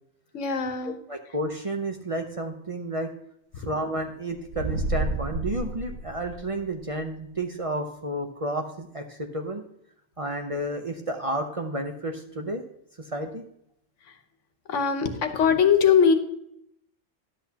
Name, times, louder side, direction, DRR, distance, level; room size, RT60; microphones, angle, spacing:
voice 1, 0.3-1.0 3.5-3.7 14.0-14.2 14.7-16.1, left 7 dB, 75° left, 8 dB, 1.2 m, -21 dB
voice 2, 1.1-3.1 3.6-9.6 10.2-12.6 13.0-13.4, right 1 dB, 35° right, 4 dB, 0.7 m, -31 dB
sound 1, 4.4-6.8, right 2 dB, 80° right, 1.2 m, -30 dB
11.0 x 8.1 x 2.8 m, 0.75 s
omnidirectional pair, 1.3 m